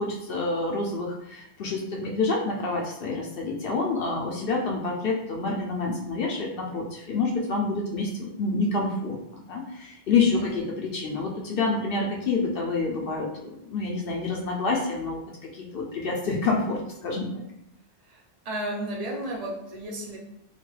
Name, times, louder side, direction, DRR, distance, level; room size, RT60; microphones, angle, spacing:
voice 1, 0.0-9.2 9.5-15.2 15.5-17.3, left 3 dB, 60° left, -1 dB, 0.6 m, -28 dB
voice 2, 18.5-20.2, right 1 dB, 40° right, -1 dB, 0.6 m, -33 dB
2.9 x 2.2 x 3.1 m, 0.80 s
omnidirectional pair, 1.3 m